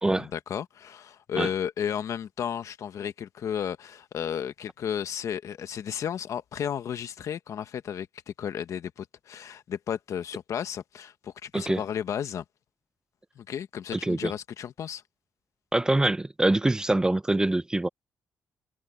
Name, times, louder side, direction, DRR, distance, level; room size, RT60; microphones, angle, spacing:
voice 1, 0.2-12.4 13.4-15.0, left 8 dB, 60° left, 1.3 m, -33 dB
voice 2, 15.7-17.9, right 2 dB, 10° right, 0.6 m, -24 dB
cardioid pair, 110°, 6 cm